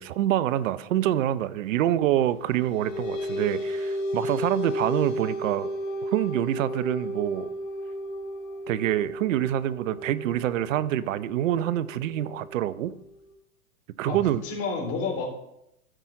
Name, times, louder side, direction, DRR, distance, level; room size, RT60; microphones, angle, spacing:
voice 1, 0.0-5.7 6.0-7.5 8.7-12.9 14.0-14.4, right 12 dB, 65° right, 16 dB, 0.7 m, -26 dB
sound 1, 2.4-13.3, equal, 65° left, 2.6 m, -34 dB
voice 2, 14.1-15.3, left 4 dB, 35° left, 1 dB, 3.1 m, -30 dB
14.0 x 5.7 x 3.7 m, 0.80 s
hypercardioid pair, 115°, 42 cm